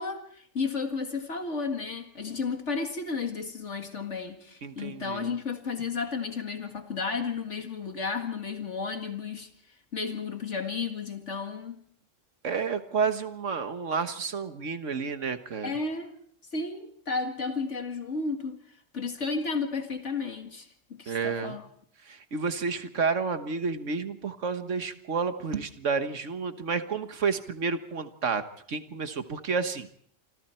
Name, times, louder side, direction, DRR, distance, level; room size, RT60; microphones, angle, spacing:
voice 1, 0.0-9.5 9.9-11.8 15.6-16.1 16.5-18.6 18.9-21.7, left 4 dB, 65° left, 5 dB, 2.2 m, -33 dB
voice 2, 4.6-5.3 12.4-15.8 21.1-21.6 22.1-28.4 28.7-29.9, right 5 dB, 70° right, 9 dB, 1.7 m, -30 dB
27.5 x 25.5 x 4.4 m, 0.62 s
omnidirectional pair, 1.3 m